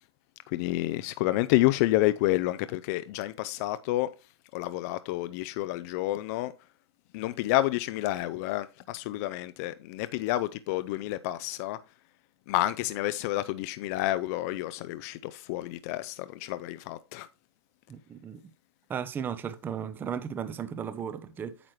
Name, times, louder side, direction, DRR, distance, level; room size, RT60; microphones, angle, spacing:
voice 1, 0.5-4.1 4.5-6.5 7.1-11.8 12.5-17.3, left 16 dB, 35° left, 0.4 m, -29 dB
voice 2, 17.9-18.4 18.9-21.6, right 7 dB, 15° right, 0.6 m, -35 dB
8.8 x 6.2 x 3.1 m
hypercardioid pair, 135°, 14 cm